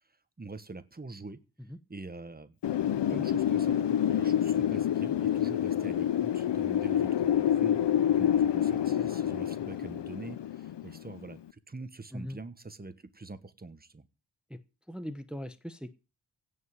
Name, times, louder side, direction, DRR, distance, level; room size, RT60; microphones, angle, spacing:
voice 1, 0.4-1.4 1.9-2.5 2.9-14.1, right 3 dB, 20° right, 1.3 m, -44 dB
Wind, 2.6-11.3, left 10 dB, 85° left, 0.7 m, -27 dB
voice 2, 14.9-15.9, equal, ahead, 0.9 m, -40 dB
16.5 x 5.6 x 9.7 m
wide cardioid pair, 145°, 41 cm